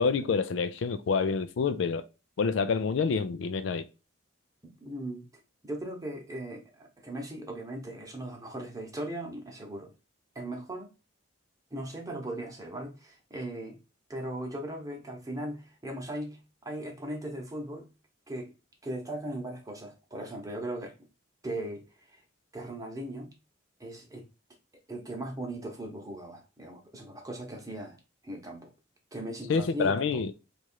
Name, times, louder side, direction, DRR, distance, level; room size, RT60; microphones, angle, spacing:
voice 1, 0.0-2.0 2.4-3.9 29.5-30.3, left 5 dB, 70° left, 0.4 m, -27 dB
voice 2, 4.6-5.3 5.6-9.9 10.3-10.9 11.7-13.8 14.1-17.9 18.3-18.5 18.8-20.9 21.4-21.8 22.1-22.2 22.5-23.3 23.8-24.2 24.9-28.0 28.2-28.7 29.1-30.2, right 1 dB, 20° right, 0.9 m, -38 dB
3.1 x 2.5 x 4.4 m
head